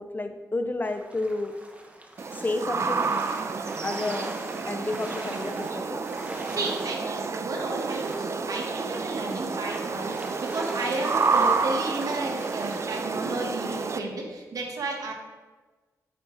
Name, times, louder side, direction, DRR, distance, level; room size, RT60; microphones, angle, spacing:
voice 1, 0.0-1.5 2.3-3.1 3.8-6.0, left 2 dB, 30° left, 7 dB, 0.6 m, -31 dB
sound 1, 0.8-13.3, right 1 dB, 20° right, 1.0 m, -43 dB
sound 2, 2.2-14.0, right 4 dB, 45° right, 0.5 m, -29 dB
voice 2, 6.5-15.1, right 2 dB, 65° right, 0 dB, 1.6 m, -33 dB
7.9 x 5.7 x 3.3 m, 1.3 s
cardioid pair, 70°, 7 cm